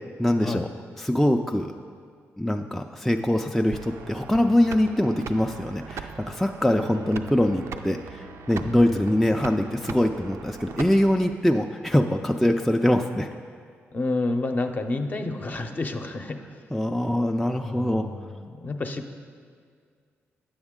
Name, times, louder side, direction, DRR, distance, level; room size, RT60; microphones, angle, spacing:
voice 1, 0.2-0.7 1.0-1.7 2.4-13.3 16.7-18.1, left 1 dB, 5° left, 3 dB, 0.3 m, -23 dB
sound 1, 3.7-11.3, right 5 dB, 70° right, 0.4 m, -40 dB
voice 2, 8.6-9.1 13.9-16.6 17.5-19.1, left 2 dB, 40° left, 5 dB, 0.6 m, -30 dB
9.4 x 7.1 x 3.7 m, 2.1 s
cardioid pair, 70°, 5 cm